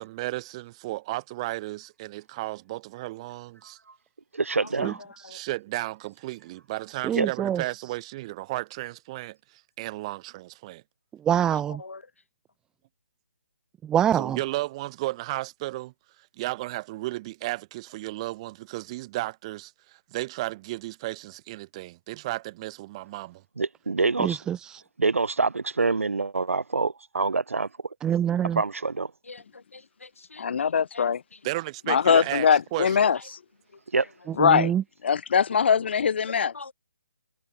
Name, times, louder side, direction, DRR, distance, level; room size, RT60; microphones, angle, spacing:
voice 1, 0.0-3.8 4.8-5.0 5.3-10.8 14.1-15.9 16.2-23.4 31.4-33.0, right 18 dB, 25° right, 5.8 m, -34 dB
voice 2, 4.3-5.0 7.1-7.3 23.6-24.4 25.0-27.7 28.5-29.1 33.9-34.1, right 4 dB, 90° right, 1.7 m, -25 dB
voice 3, 7.0-7.6 11.2-11.8 13.8-14.4 24.2-24.8 28.0-28.6 34.4-34.8, right 10 dB, 10° right, 1.0 m, -25 dB
voice 4, 11.5-12.0 29.3-30.7 30.9-31.1 33.1-33.2 36.4-36.7, left 3 dB, 90° left, 4.0 m, -44 dB
voice 5, 30.4-31.2 31.9-33.2 34.4-34.7 35.0-36.5, left 7 dB, 55° left, 1.2 m, -21 dB
hypercardioid pair, 160°, 7 cm